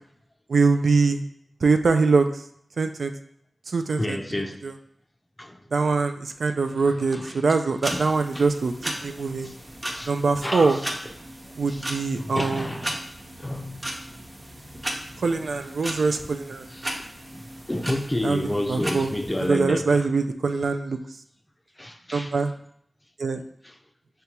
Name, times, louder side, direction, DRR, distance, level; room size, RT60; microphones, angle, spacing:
voice 1, 0.5-1.2 1.6-2.3 2.8-3.1 3.7-4.2 4.6-4.7 5.7-8.7 9.0-9.5 10.1-10.8 11.6-12.7 15.2-16.7 18.2-19.1 19.5-21.0 22.1-22.5 23.2-23.4, right 4 dB, 80° right, 0.3 m, -23 dB
voice 2, 4.0-4.6 5.4-5.6 6.7-7.4 7.9-8.5 9.0-9.1 9.4-9.7 9.9-10.1 10.4-10.9 11.7-11.9 12.2-13.0 13.4-13.9 16.7-16.9 17.3-17.4 17.7-20.1 21.8-22.4 23.6-23.7, left 1 dB, 15° left, 0.4 m, -30 dB
sound 1, 7.8-19.5, right 1 dB, 30° right, 0.8 m, -36 dB
6.5 x 2.3 x 2.9 m
wide cardioid pair, 80°, 0 cm